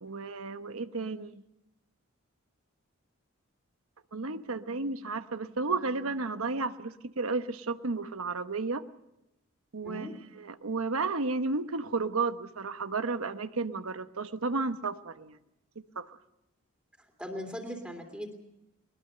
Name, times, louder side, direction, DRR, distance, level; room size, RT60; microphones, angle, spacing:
voice 1, 0.0-1.4 4.1-8.8 9.7-10.1 10.4-15.4 16.0-16.2, right 3 dB, 85° right, 10 dB, 1.0 m, -32 dB
voice 2, 9.8-10.1 17.0-18.3, equal, 5° right, 3 dB, 2.8 m, -39 dB
21.5 x 21.0 x 6.7 m, 0.90 s
head